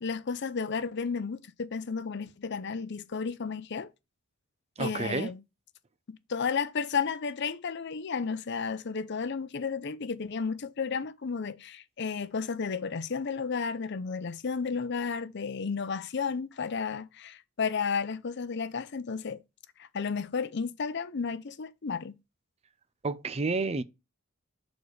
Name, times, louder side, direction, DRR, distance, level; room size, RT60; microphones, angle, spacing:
voice 1, 0.0-3.9 4.8-5.4 6.1-19.4 19.8-22.2, left 5 dB, 55° left, 0.6 m, -33 dB
voice 2, 4.8-5.3 23.0-23.8, right 3 dB, 30° right, 0.5 m, -30 dB
6.8 x 4.1 x 4.7 m
head